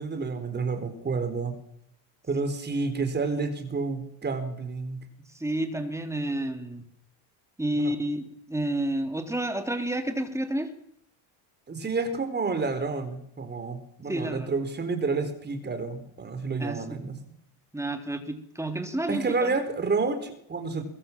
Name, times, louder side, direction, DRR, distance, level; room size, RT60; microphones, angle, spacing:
voice 1, 0.0-1.6 2.3-5.0 7.7-7.9 11.7-17.2 19.1-20.8, right 4 dB, 25° right, 9 dB, 4.2 m, -30 dB
voice 2, 5.3-6.8 7.6-10.7 14.1-14.5 16.6-17.0 17.7-19.6, right 1 dB, 5° right, 6 dB, 3.4 m, -30 dB
24.5 x 22.5 x 7.3 m, 0.72 s
cardioid pair, 120°, 42 cm